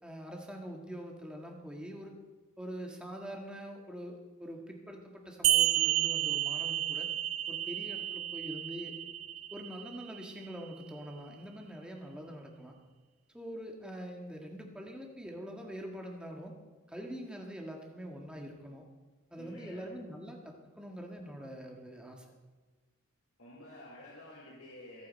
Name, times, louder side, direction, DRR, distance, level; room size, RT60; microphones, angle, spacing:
voice 1, 0.0-2.1 2.6-7.1 7.5-9.0 9.5-12.8 13.3-16.5 16.9-18.8 19.3-22.3, equal, 5° right, 1 dB, 1.7 m, -44 dB
sound 1, 5.4-10.5, right 14 dB, 75° right, 0.7 m, -31 dB
voice 2, 19.4-19.8 23.4-25.1, left 1 dB, 85° left, -7 dB, 4.3 m, -50 dB
26.5 x 9.1 x 4.2 m, 1.3 s
head